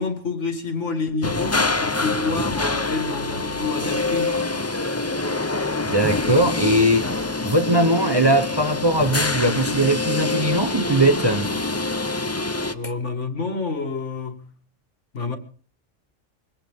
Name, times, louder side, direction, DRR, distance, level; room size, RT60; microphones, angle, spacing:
voice 1, 0.0-4.4 12.7-14.5 15.1-15.4, left 4 dB, 65° left, 2.2 m, -28 dB
sound 1, 1.2-12.7, left 3 dB, 15° left, 0.5 m, -25 dB
voice 2, 5.8-7.1 7.4-11.5, right 1 dB, 20° right, 0.9 m, -20 dB
22.5 x 17.0 x 3.6 m
omnidirectional pair, 1.3 m